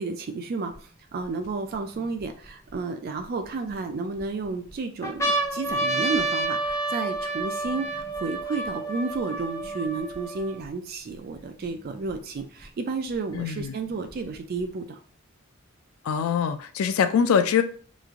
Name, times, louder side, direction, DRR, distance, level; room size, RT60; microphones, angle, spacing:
voice 1, 0.0-15.0, right 4 dB, 45° right, 0.3 m, -32 dB
sound 1, 0.7-0.8 1.5-2.7 3.4-4.2 4.7-4.8 5.0-10.7 11.4-11.5 11.6-12.6 13.6-14.6, right 2 dB, 15° left, 0.6 m, -29 dB
voice 2, 13.3-13.7 16.0-17.6, left 7 dB, 80° left, 0.3 m, -23 dB
3.1 x 2.4 x 3.5 m
head